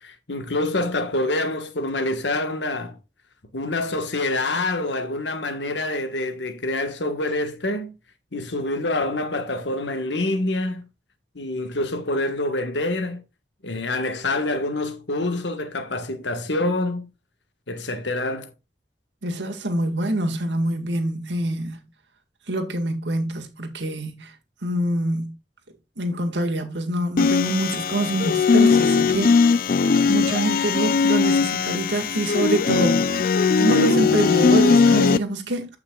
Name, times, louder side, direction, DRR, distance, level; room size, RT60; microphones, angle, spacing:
voice 1, 0.0-3.0 3.5-7.9 8.3-10.9 11.3-13.2 13.6-17.1 17.7-18.5, left 2 dB, 90° left, 1.5 m, -26 dB
voice 2, 19.2-21.8 22.5-24.3 24.6-25.3 26.0-29.4 30.1-33.1 33.6-35.8, right 1 dB, 90° right, 1.9 m, -25 dB
sound 1, 27.2-35.2, left 5 dB, 55° left, 0.5 m, -19 dB
14.5 x 5.8 x 2.4 m
head